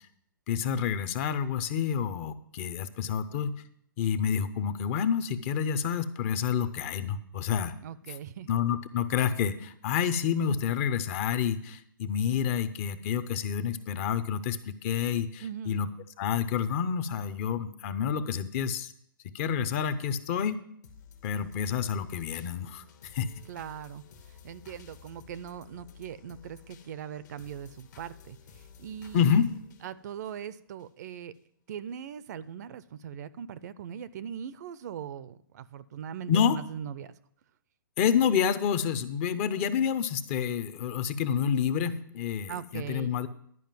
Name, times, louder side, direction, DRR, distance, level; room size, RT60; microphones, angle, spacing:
voice 1, 0.5-3.6 4.0-7.7 8.5-15.9 16.2-18.9 19.3-20.6 21.2-23.3 29.1-29.5 36.3-36.6 38.0-43.3, left 7 dB, 35° left, 12 dB, 0.6 m, -28 dB
voice 2, 7.8-8.5 15.4-15.8 23.5-29.4 29.8-31.3 31.7-37.1 42.5-43.2, right 9 dB, 50° right, 17 dB, 0.5 m, -40 dB
sound 1, 20.8-30.9 31.3-31.4, left 6 dB, 55° left, 1.1 m, -53 dB
11.0 x 5.1 x 7.4 m, 0.68 s
hypercardioid pair, 140°, 12 cm